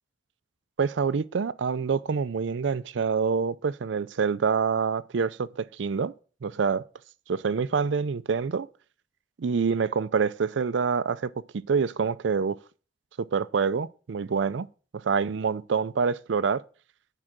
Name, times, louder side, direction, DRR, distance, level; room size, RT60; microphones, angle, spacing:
voice 1, 0.8-6.1 6.4-6.8 7.3-8.7 9.4-12.6 13.2-14.7 14.9-16.6, right 5 dB, 75° right, 0.4 m, -26 dB
8.8 x 4.8 x 6.1 m
head